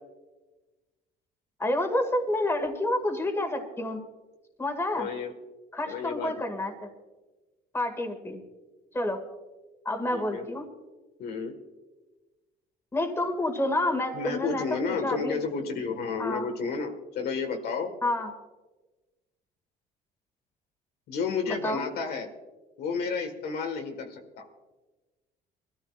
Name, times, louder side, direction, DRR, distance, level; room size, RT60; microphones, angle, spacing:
voice 1, 1.6-4.0 4.6-5.1 5.7-6.9 7.7-8.4 8.9-9.2 9.8-10.7 12.9-15.4 16.2-16.5 18.0-18.3 21.5-21.9, left 1 dB, 15° left, 4 dB, 2.0 m, -29 dB
voice 2, 4.9-5.3 5.9-6.3 10.1-10.4 11.2-11.5 14.1-17.9 21.1-22.3 22.8-24.5, left 5 dB, 70° left, 4 dB, 1.7 m, -31 dB
22.5 x 13.5 x 2.5 m, 1.2 s
cardioid pair, 110°, 17 cm